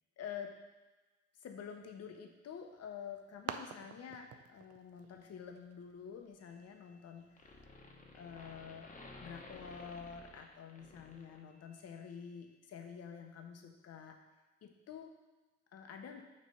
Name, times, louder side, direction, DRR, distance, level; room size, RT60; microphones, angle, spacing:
voice 1, 0.2-0.6 1.4-7.7 8.1-8.9 9.2-14.2 14.6-15.1 15.7-16.2, left 7 dB, 55° left, 4 dB, 0.9 m, -48 dB
sound 1, 2.5-7.7, right 8 dB, 55° right, 0.5 m, -51 dB
sound 2, 6.4-7.1 7.4-11.8, left 3 dB, 25° left, 1.0 m, -54 dB
6.5 x 3.2 x 5.4 m, 1.2 s
cardioid pair, 90°, 30 cm